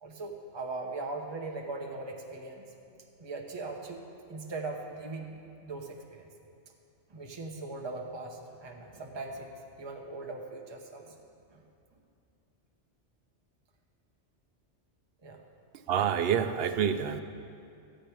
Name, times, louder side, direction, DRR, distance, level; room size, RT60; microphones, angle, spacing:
voice 1, 0.0-2.7 3.2-6.3 7.1-9.5 9.8-11.2 11.5-11.6 15.2-15.4, right 3 dB, 25° right, 1 dB, 0.9 m, -40 dB
voice 2, 15.7-17.2, right 8 dB, 65° right, 9 dB, 0.8 m, -28 dB
13.5 x 5.1 x 9.1 m, 2.5 s
omnidirectional pair, 1.2 m